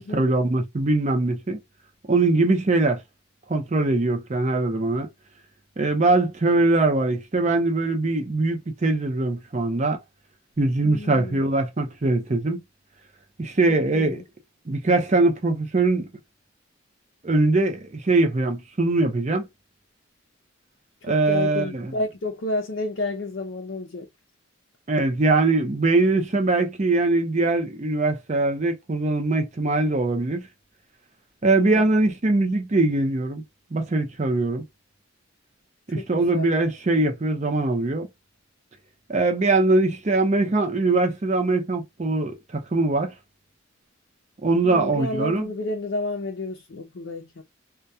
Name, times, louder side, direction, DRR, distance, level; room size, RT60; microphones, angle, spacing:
voice 1, 0.0-1.6 2.1-3.0 3.5-5.1 5.8-10.0 10.6-12.6 13.4-14.2 14.7-16.1 17.2-19.5 21.0-21.9 24.9-30.5 31.4-33.4 33.7-34.6 35.9-38.1 39.1-43.1 44.4-45.5, right 2 dB, 35° right, 0.6 m, -22 dB
voice 2, 10.8-11.4 13.7-14.2 21.1-24.1 31.6-31.9 35.9-36.5 44.6-47.4, left 2 dB, 60° left, 0.5 m, -31 dB
2.2 x 2.2 x 2.6 m
head